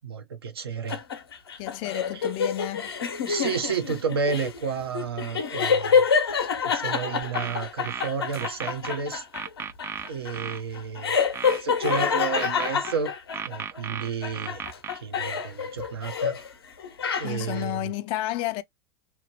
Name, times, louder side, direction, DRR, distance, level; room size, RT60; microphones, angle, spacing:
voice 1, 0.0-1.0 2.1-2.2 3.3-6.1 6.6-9.2 10.1-11.2 11.5-13.1 13.4-14.6 15.0-16.4 17.2-17.9, right 5 dB, 80° right, 0.8 m, -31 dB
sound 1, 0.9-13.8 14.2-16.5 16.8-17.6, left 6 dB, 80° left, 0.8 m, -27 dB
voice 2, 1.6-2.9 17.2-18.6, left 15 dB, 45° left, 0.4 m, -31 dB
sound 2, 7.2-9.0 9.3-10.6 11.3-13.0 13.3-15.0, right 7 dB, 20° right, 0.3 m, -35 dB
3.0 x 2.0 x 2.9 m
hypercardioid pair, 90°, 13 cm